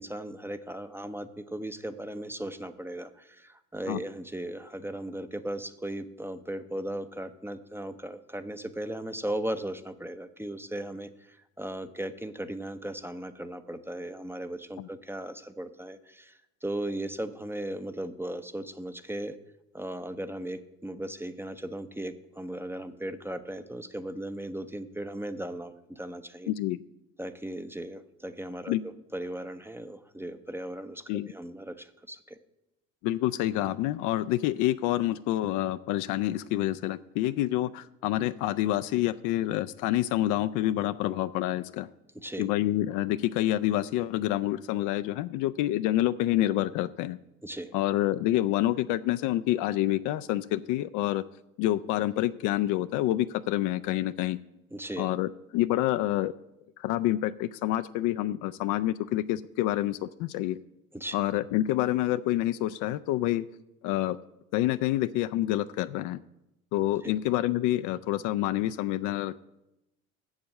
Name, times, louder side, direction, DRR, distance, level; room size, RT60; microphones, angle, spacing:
voice 1, 0.0-19.4 19.7-26.5 27.2-28.8 29.1-32.4 42.2-42.5 47.4-47.7 54.7-55.1 60.9-61.2 67.0-67.1, right 1 dB, 5° right, 10 dB, 0.6 m, -37 dB
voice 2, 26.5-26.8 28.7-28.8 31.1-31.3 33.0-41.9 42.4-47.2 47.7-51.2 51.6-54.4 55.0-56.3 56.8-60.6 61.1-63.4 63.8-64.2 64.5-66.2 66.7-69.4, left 14 dB, 50° left, 12 dB, 0.4 m, -27 dB
7.2 x 7.1 x 7.6 m, 0.90 s
hypercardioid pair, 65°, 39 cm